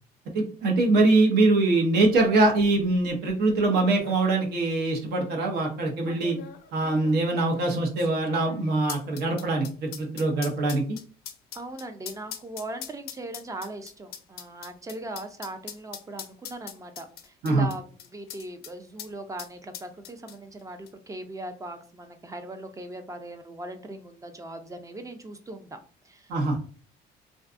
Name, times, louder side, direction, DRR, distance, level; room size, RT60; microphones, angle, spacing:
voice 1, 0.3-6.4 6.7-11.0 17.4-17.7 26.3-26.6, right 2 dB, 75° right, 1 dB, 0.8 m, -23 dB
sound 1, 3.5-3.6 3.8-4.2 5.0-5.1 6.1-18.7 19.0-19.1 19.4-20.6 20.9-21.0, left 9 dB, 70° left, 0.4 m, -42 dB
voice 2, 11.5-25.8 26.0-26.6, right 2 dB, 20° right, 7 dB, 0.4 m, -39 dB
2.6 x 2.3 x 2.4 m, 0.39 s
cardioid pair, 110°, 17 cm